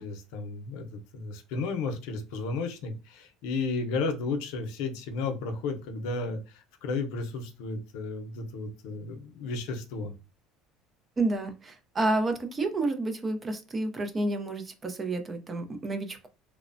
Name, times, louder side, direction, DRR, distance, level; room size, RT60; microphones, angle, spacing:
voice 1, 0.0-10.1, left 3 dB, 75° left, 0.6 m, -33 dB
voice 2, 11.2-16.3, right 2 dB, 20° right, 0.4 m, -30 dB
3.0 x 2.0 x 2.5 m
cardioid pair, 145°, 0 cm